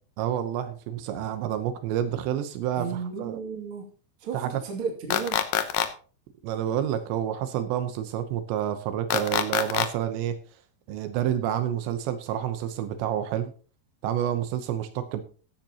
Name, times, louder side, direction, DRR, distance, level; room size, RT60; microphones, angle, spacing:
voice 1, 0.2-3.4 4.3-4.6 6.4-10.4 10.9-13.5 14.0-15.2, right 10 dB, 80° right, 9 dB, 3.1 m, -29 dB
voice 2, 2.8-3.8 4.2-5.4, right 5 dB, 35° right, 1 dB, 2.4 m, -33 dB
sound 1, 5.1-5.9 9.1-9.9, left 11 dB, 80° left, 2.0 m, -24 dB
14.5 x 10.5 x 2.9 m, 0.39 s
omnidirectional pair, 5.2 m